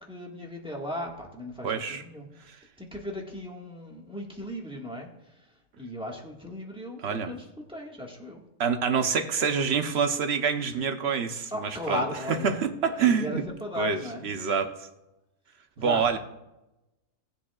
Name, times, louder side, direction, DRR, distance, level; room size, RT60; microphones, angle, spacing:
voice 1, 0.1-2.3 2.8-5.1 5.8-7.4 7.7-8.4 11.5-12.5 13.0-14.3 15.8-16.2, left 1 dB, 5° right, -1 dB, 1.4 m, -36 dB
voice 2, 1.6-2.0 7.0-7.3 8.6-13.5 13.8-14.9 15.8-16.2, right 6 dB, 50° right, 6 dB, 0.9 m, -27 dB
19.0 x 7.4 x 2.4 m, 0.96 s
omnidirectional pair, 1.6 m